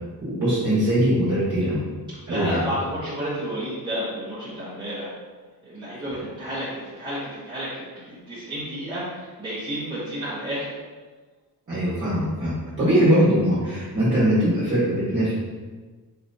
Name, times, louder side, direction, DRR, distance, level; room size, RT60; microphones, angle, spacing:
voice 1, 0.2-1.8 2.3-2.7 11.7-15.3, equal, 35° right, -9 dB, 1.5 m, -21 dB
voice 2, 2.3-5.1 5.6-10.7, equal, 10° right, -12 dB, 1.3 m, -31 dB
4.4 x 4.0 x 2.8 m, 1.4 s
wide cardioid pair, 150°, 37 cm